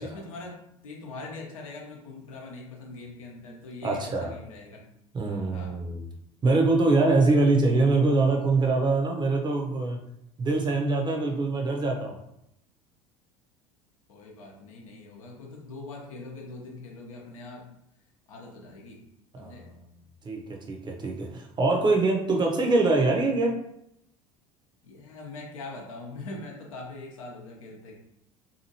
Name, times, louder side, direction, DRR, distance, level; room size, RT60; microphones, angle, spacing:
voice 1, 0.0-4.9 5.5-5.8 14.1-17.6 18.3-19.0 19.4-19.7 24.8-28.0, left 2 dB, 75° left, -1 dB, 0.8 m, -42 dB
voice 2, 3.8-4.3 5.1-6.1 6.4-10.0 10.4-12.2 19.3-19.8 20.2-23.6, right 3 dB, 25° right, 2 dB, 0.7 m, -24 dB
2.8 x 2.6 x 2.7 m, 0.79 s
figure-of-eight pair, 70°, 18 cm